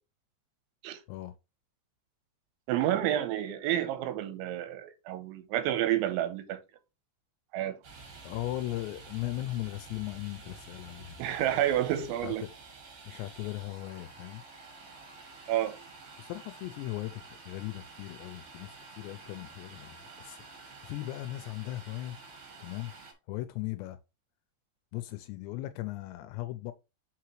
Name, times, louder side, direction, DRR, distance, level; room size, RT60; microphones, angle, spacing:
voice 1, 2.7-6.6 7.5-7.8 11.2-12.5 13.1-13.2 15.5-15.8, right 12 dB, 90° right, 3.1 m, -30 dB
Domestic sounds home sounds, 7.8-23.1, right 4 dB, 55° right, 2.1 m, -50 dB
voice 2, 8.2-11.4 12.2-12.5 13.1-14.4 16.2-22.2 22.6-22.9 23.3-24.0 24.9-26.7, left 16 dB, 85° left, 2.6 m, -38 dB
6.1 x 5.8 x 3.1 m
omnidirectional pair, 5.4 m